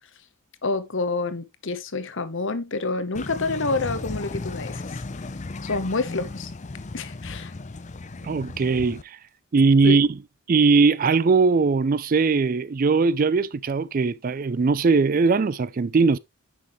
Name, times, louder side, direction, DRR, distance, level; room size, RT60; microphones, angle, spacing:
voice 1, 0.6-5.0 5.6-6.5 6.9-7.5 9.8-10.0, left 3 dB, 55° left, 1.0 m, -28 dB
sound 1, 3.1-9.0, left 3 dB, 30° left, 0.6 m, -35 dB
voice 2, 8.2-9.2 9.5-10.2 10.5-16.2, right 4 dB, 40° right, 0.4 m, -20 dB
9.5 x 6.3 x 3.1 m
head